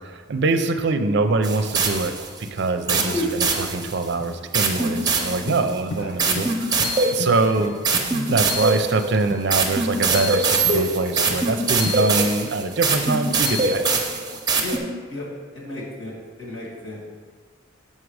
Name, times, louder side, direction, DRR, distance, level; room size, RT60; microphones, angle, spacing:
voice 1, 0.0-2.1 2.4-13.9, right 3 dB, 60° right, 8 dB, 0.5 m, -24 dB
sound 1, 1.4-2.4 2.9-4.1 4.5-5.7 6.2-14.8, right 3 dB, 20° right, 0.7 m, -23 dB
voice 2, 2.9-3.3 6.0-6.2 7.4-7.5 14.6-14.8 15.1-15.3 15.5-17.0, left 2 dB, 70° left, -4 dB, 2.3 m, -35 dB
sound 2, 3.3-3.4 3.7-3.9 4.2-4.4 4.7-4.9 5.5-5.6 5.9-6.1 6.4-6.5 6.8-6.9 7.2-8.4 8.7-8.9 9.3-9.5 10.1-10.2 10.6-10.9 11.3-11.5 11.8-12.0, left 3 dB, 30° left, 0.4 m, -34 dB
6.1 x 5.6 x 4.8 m, 1.5 s
head